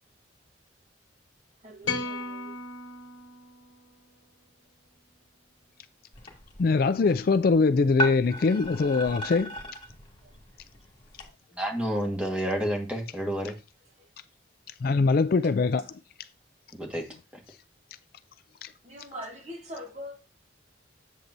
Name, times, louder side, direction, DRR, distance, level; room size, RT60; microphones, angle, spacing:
voice 1, 1.6-2.6 10.2-10.4 14.0-14.1 15.4-15.9 18.8-20.2, equal, 35° right, 1.2 m, -43 dB
sound 1, 1.8-4.2, left 4 dB, 75° left, 0.9 m, -36 dB
sound 2, 6.1-11.3, equal, 25° left, 2.1 m, -36 dB
voice 2, 6.6-9.5 14.8-15.8 18.6-18.7, left 4 dB, 50° left, 0.3 m, -22 dB
voice 3, 11.5-13.6 16.7-17.0, equal, 5° right, 1.5 m, -29 dB
8.1 x 7.2 x 2.6 m
head